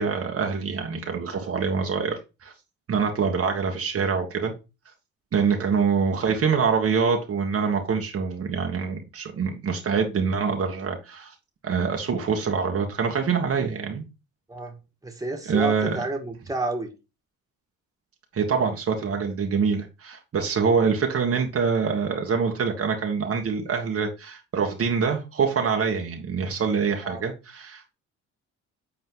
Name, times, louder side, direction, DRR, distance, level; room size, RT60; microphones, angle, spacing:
voice 1, 0.0-2.1 2.4-2.5 2.9-4.5 5.3-11.3 11.6-14.0 15.4-16.0 18.3-27.9, right 5 dB, 50° right, 1.6 m, -25 dB
voice 2, 15.0-16.9 27.0-27.2, right 2 dB, 10° right, 2.1 m, -30 dB
8.3 x 4.2 x 3.8 m
cardioid pair, 90°, 30 cm